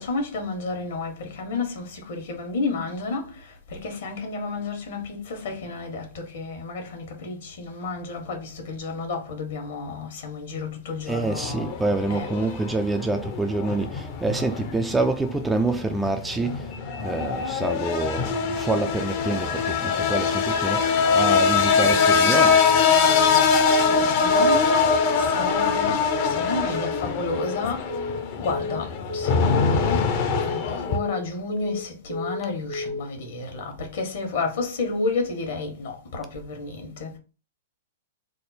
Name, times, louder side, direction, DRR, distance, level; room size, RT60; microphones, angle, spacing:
voice 1, 0.0-11.8 12.1-12.3 23.2-28.0 28.4-30.1 30.4-37.2, left 3 dB, 65° left, 1.3 m, -31 dB
voice 2, 11.1-16.7 17.0-22.7, right 3 dB, 10° right, 0.4 m, -27 dB
sound 1, 11.2-31.0, left 5 dB, 45° left, 0.7 m, -23 dB
Telephone, 21.9-22.2 22.5-22.8 23.1-23.4 23.7-24.0 24.3-24.6 24.9-25.2 25.5-25.8 26.1-26.4 26.7-27.0 27.3-27.6 27.9-28.2 28.5-28.8 29.1-29.4 29.7-30.0 30.3-30.6 30.9-31.2 31.5-31.8 32.1-32.4 32.7-33.0, left 2 dB, 70° right, 1.2 m, -32 dB
3.5 x 2.0 x 4.1 m
hypercardioid pair, 120°, 0 cm